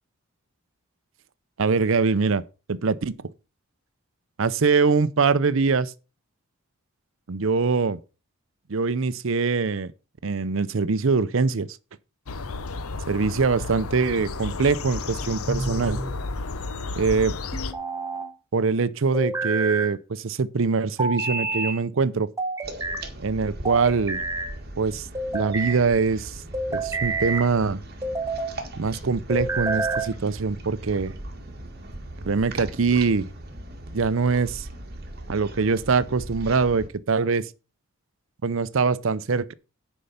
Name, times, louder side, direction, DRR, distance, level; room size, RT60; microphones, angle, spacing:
voice 1, 1.6-2.4 2.7-3.1 4.4-5.9 7.3-8.0 8.7-9.9 10.2-11.7 13.1-16.0 17.0-17.3 18.5-22.3 23.2-24.2 24.8-25.1 25.3-26.4 26.7-27.8 28.8-31.1 32.3-33.3 33.9-34.7 35.3-37.5 38.4-39.5, right 4 dB, 65° right, 0.6 m, -23 dB
sound 1, 12.3-17.7, left 3 dB, 85° left, 0.8 m, -32 dB
sound 2, 15.5-16.2 17.5-18.3 19.1-19.9 21.0-21.8 22.4-23.0 23.6-24.5 25.1-25.8 26.5-27.5 28.0-28.5 29.3-30.1, right 3 dB, 15° right, 1.3 m, -28 dB
sound 3, 22.6-36.9, right 1 dB, 45° right, 1.7 m, -39 dB
10.0 x 5.4 x 5.7 m
head